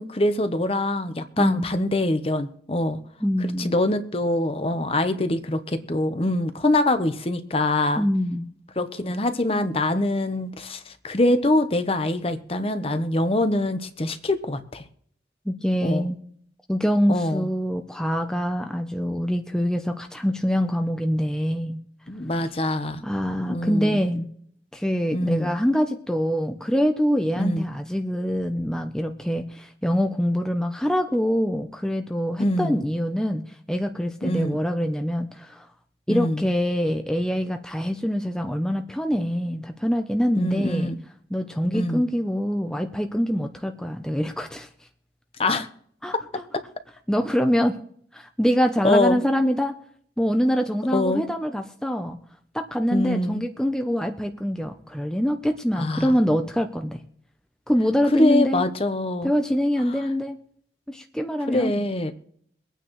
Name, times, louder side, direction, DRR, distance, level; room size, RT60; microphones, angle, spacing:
voice 1, 0.0-3.0 3.4-8.0 8.8-14.8 15.8-16.1 17.1-17.4 22.1-23.0 23.5-24.0 25.1-25.5 27.4-27.6 32.4-32.8 34.2-34.6 36.1-36.4 40.4-41.0 41.7-42.0 45.4-45.7 48.8-49.2 50.9-51.2 52.9-53.4 55.8-56.1 58.1-59.3 61.5-62.1, left 1 dB, 35° left, 9 dB, 0.9 m, -24 dB
voice 2, 1.4-1.7 3.2-3.7 8.0-8.4 15.5-16.2 16.7-21.8 23.0-24.3 24.7-35.7 36.1-40.9 41.3-44.7 46.0-46.4 47.1-47.7 48.1-49.8 50.2-52.2 52.5-57.0 57.7-58.6 59.2-60.4 60.9-61.9, equal, 5° left, 5 dB, 0.6 m, -24 dB
23.5 x 9.2 x 3.1 m, 0.64 s
head